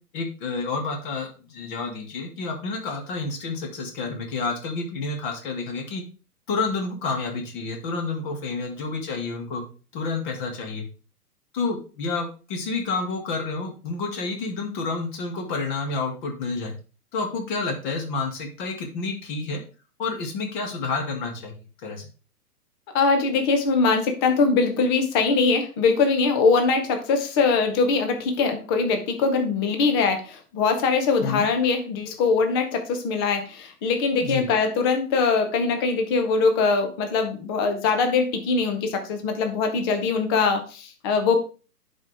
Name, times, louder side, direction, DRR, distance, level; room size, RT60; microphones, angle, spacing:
voice 1, 0.1-6.0 6.5-9.6 9.9-10.8 11.5-16.7 17.1-19.6 20.0-22.1 31.2-31.5 34.2-34.5, left 4 dB, 30° left, 3 dB, 1.9 m, -29 dB
voice 2, 22.9-41.4, left 4 dB, 15° left, 6 dB, 0.6 m, -22 dB
10.5 x 4.6 x 3.3 m, 0.35 s
hypercardioid pair, 150°, 47 cm